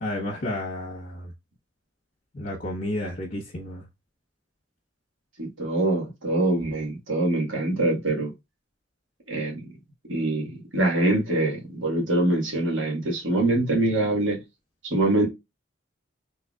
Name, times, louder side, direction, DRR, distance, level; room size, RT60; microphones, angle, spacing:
voice 1, 0.0-1.3 2.3-3.8, left 1 dB, 50° left, 1.1 m, -31 dB
voice 2, 5.4-8.3 9.3-9.7 10.1-14.4 14.8-15.3, right 2 dB, 85° right, 1.6 m, -24 dB
3.9 x 3.4 x 2.4 m
head